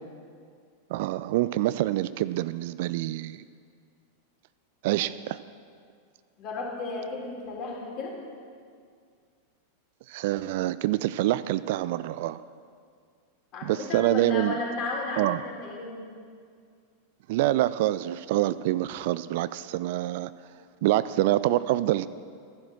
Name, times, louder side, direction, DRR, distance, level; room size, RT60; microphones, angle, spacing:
voice 1, 0.9-3.4 4.8-5.4 10.1-12.4 13.6-14.6 15.2-15.4 17.3-20.3 20.8-22.1, right 15 dB, 50° right, 16 dB, 0.3 m, -26 dB
voice 2, 6.4-8.1 13.5-16.1, left 3 dB, 40° left, -2 dB, 3.7 m, -34 dB
14.0 x 10.5 x 6.2 m, 2.1 s
figure-of-eight pair, 90°, 0 cm